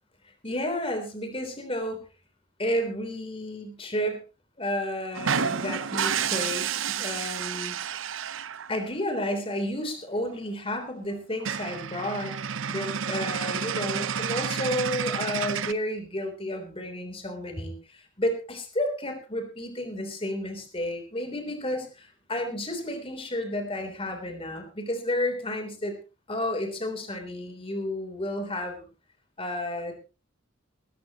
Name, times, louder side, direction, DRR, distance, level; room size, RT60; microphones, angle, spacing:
voice 1, 0.4-2.0 2.6-4.2 4.6-6.7 7.0-7.7 8.7-12.4 12.7-26.0 26.3-28.8 29.4-30.0, left 1 dB, 30° left, 6 dB, 3.5 m, -31 dB
sound 1, 5.1-8.8 10.3-10.4 10.7-10.8 11.1-11.2 11.4-15.7, right 7 dB, 80° right, 0.7 m, -30 dB
19.5 x 14.0 x 3.0 m, 0.31 s
head